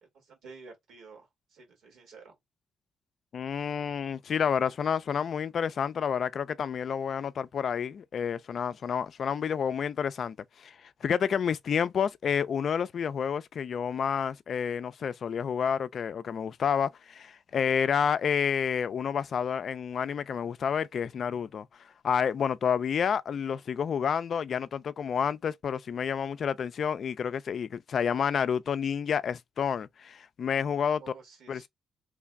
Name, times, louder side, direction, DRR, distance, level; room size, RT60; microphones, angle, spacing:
voice 1, 0.0-2.3 31.0-31.7, right 4 dB, 75° right, 1.6 m, -51 dB
voice 2, 3.3-31.0 31.5-31.7, left 7 dB, 55° left, 0.3 m, -29 dB
3.2 x 2.1 x 3.5 m
cardioid pair, 90°, 0 cm